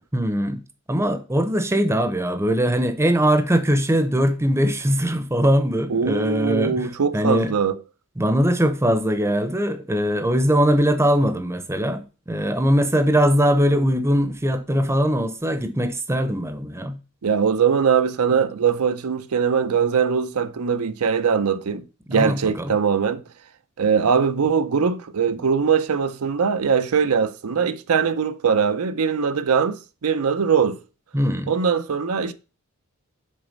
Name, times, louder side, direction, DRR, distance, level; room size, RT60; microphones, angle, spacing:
voice 1, 0.1-0.6 0.9-6.9 7.1-7.5 8.2-17.0 22.1-22.7 31.1-31.5, equal, 10° right, 0.7 m, -21 dB
voice 2, 5.9-7.7 17.2-21.8 22.1-23.2 23.8-30.8 31.5-32.3, right 6 dB, 75° right, 0.5 m, -21 dB
6.4 x 4.0 x 5.2 m
head